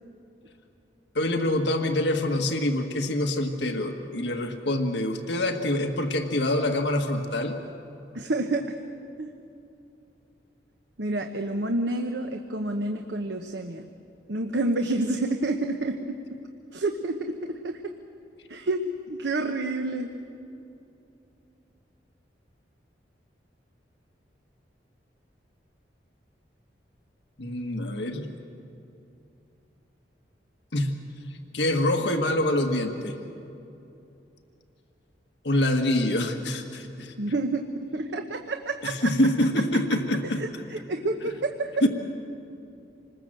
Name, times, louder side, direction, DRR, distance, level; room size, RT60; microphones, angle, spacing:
voice 1, 1.1-7.6 27.4-28.3 30.7-31.0 31.5-33.1 35.4-37.1 38.8-40.4 41.8-41.9, left 1 dB, 75° left, 4 dB, 1.6 m, -25 dB
voice 2, 8.1-8.7 9.2-9.3 11.0-13.9 14.3-16.2 16.7-17.8 18.5-20.1 37.2-39.1 40.4-41.8, right 2 dB, 75° right, 5 dB, 1.1 m, -29 dB
26.5 x 20.5 x 7.7 m, 2.8 s
head